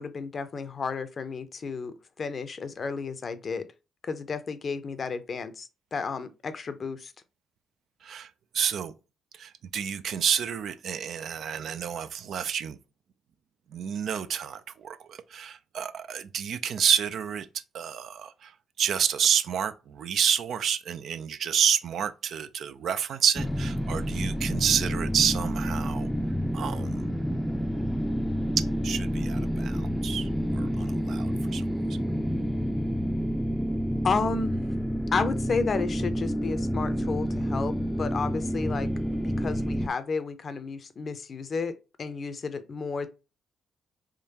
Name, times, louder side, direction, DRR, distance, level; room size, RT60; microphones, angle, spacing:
voice 1, 0.0-3.7 4.0-7.1 34.0-34.6 35.1-38.9 39.2-43.1, left 5 dB, 50° left, 0.5 m, -32 dB
voice 2, 8.0-8.9 9.3-12.8 13.7-17.5 17.7-18.5 18.8-26.1 26.5-27.1 28.8-31.6, right 8 dB, 65° right, 0.4 m, -29 dB
sound 1, 23.4-39.9, equal, 5° left, 0.5 m, -29 dB
3.7 x 3.1 x 2.8 m
hypercardioid pair, 45°, 0 cm